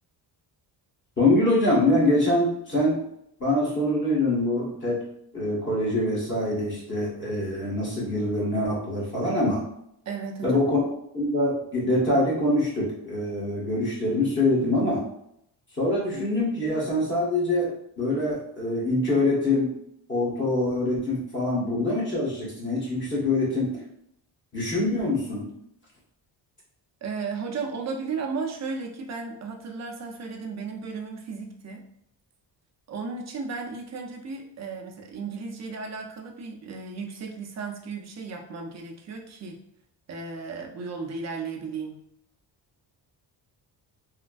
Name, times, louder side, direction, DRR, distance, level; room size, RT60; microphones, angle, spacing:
voice 1, 1.2-3.0 3.4-5.0 5.3-9.6 10.4-15.0 15.8-19.7 20.1-23.7 24.5-25.5, left 1 dB, 25° left, -6 dB, 1.4 m, -24 dB
voice 2, 10.1-10.6 27.0-31.9 32.9-39.6 40.1-42.0, right 4 dB, 35° right, 1 dB, 0.6 m, -35 dB
3.2 x 2.2 x 2.5 m, 0.74 s
cardioid pair, 100°, 45 cm